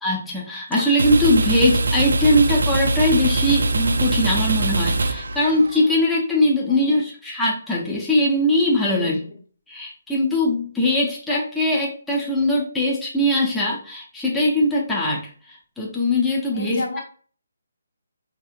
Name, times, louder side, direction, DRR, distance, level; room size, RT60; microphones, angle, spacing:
voice 1, 0.0-9.2 9.7-15.2 15.5-16.8, left 1 dB, 5° left, -5 dB, 0.7 m, -21 dB
sound 1, 0.7-5.9, right 2 dB, 75° right, 0.4 m, -22 dB
voice 2, 16.5-17.0, left 2 dB, 65° left, 2 dB, 1.0 m, -31 dB
4.1 x 2.8 x 2.4 m, 0.43 s
hypercardioid pair, 155°, 0 cm